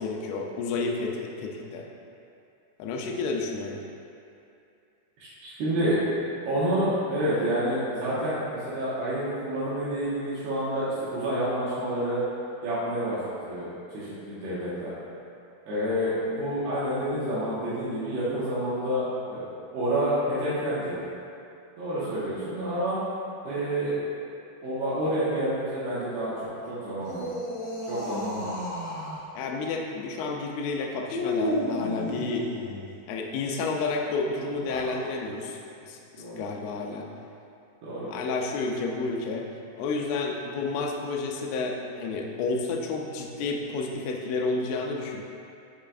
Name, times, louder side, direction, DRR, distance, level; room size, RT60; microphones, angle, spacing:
voice 1, 0.0-1.9 2.8-3.8 29.4-32.5 33.1-37.1 38.1-39.5 39.7-45.2, left 3 dB, 80° left, 1 dB, 2.6 m, -30 dB
voice 2, 5.2-6.0 6.5-12.2 12.6-13.2 13.4-13.7 13.9-14.9 15.7-19.5 19.7-21.0 21.8-23.0 23.4-23.9 24.6-26.3 26.7-27.2 27.9-28.5 36.2-36.4 37.8-38.1, right 1 dB, 75° right, -11 dB, 3.1 m, -28 dB
sound 1, 26.9-29.2 31.1-32.9 34.5-35.0, left 1 dB, 60° left, 1.8 m, -32 dB
7.5 x 7.1 x 2.4 m, 2.6 s
omnidirectional pair, 4.9 m